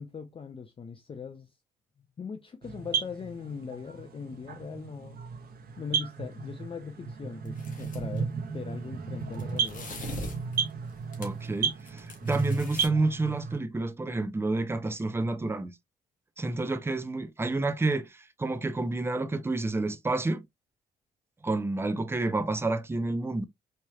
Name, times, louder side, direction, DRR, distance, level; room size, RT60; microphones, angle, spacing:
voice 1, 0.0-1.6 2.0-5.2 5.8-9.9, left 6 dB, 30° left, 0.5 m, -40 dB
sound 1, 2.6-13.6, right 6 dB, 60° right, 1.1 m, -34 dB
sound 2, 7.5-8.2 9.3-11.5 11.8-12.9, left 2 dB, 45° left, 1.5 m, -42 dB
voice 2, 11.2-15.7 16.4-20.4 21.4-23.4, right 2 dB, 15° right, 0.6 m, -29 dB
4.5 x 3.1 x 2.2 m
cardioid pair, 85°, 18 cm